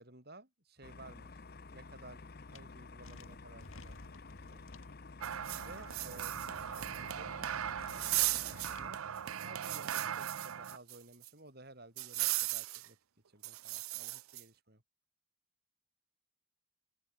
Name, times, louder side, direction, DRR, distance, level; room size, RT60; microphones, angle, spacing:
voice 1, 0.0-1.4 1.7-4.6 5.6-9.0 9.4-13.0 13.3-14.8, right 2 dB, 50° right, 5.1 m, -56 dB
sound 1, 0.8-8.9, left 3 dB, 45° left, 0.8 m, -51 dB
sound 2, 2.5-2.6 3.0-4.9 5.5-6.0 6.5-7.1 7.6-8.9, left 2 dB, 80° left, 3.2 m, -56 dB
sound 3, 5.2-11.0 11.2-11.3 12.0-12.9 13.4-14.4, right 13 dB, 85° right, 0.6 m, -37 dB
open air
head